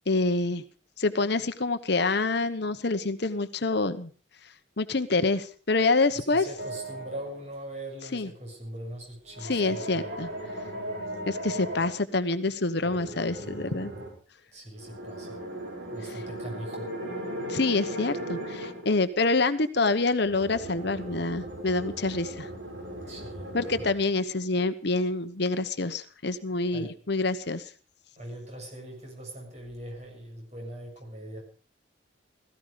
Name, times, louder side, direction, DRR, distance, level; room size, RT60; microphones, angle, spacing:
voice 1, 0.1-0.6 1.0-4.1 4.8-6.4 8.1-8.3 9.4-10.3 11.3-13.9 17.5-22.5 23.5-27.7, left 3 dB, 55° left, 11 dB, 1.0 m, -27 dB
voice 2, 6.1-10.2 14.5-15.5 15.9-17.0 23.1-23.9 26.7-27.0 28.2-31.4, right 1 dB, 35° right, 0 dB, 7.3 m, -41 dB
sound 1, 6.6-7.5 9.3-11.9 12.8-14.1 14.8-18.9 20.2-23.9, right 1 dB, 60° right, 6.1 m, -37 dB
17.0 x 15.5 x 5.1 m, 0.39 s
head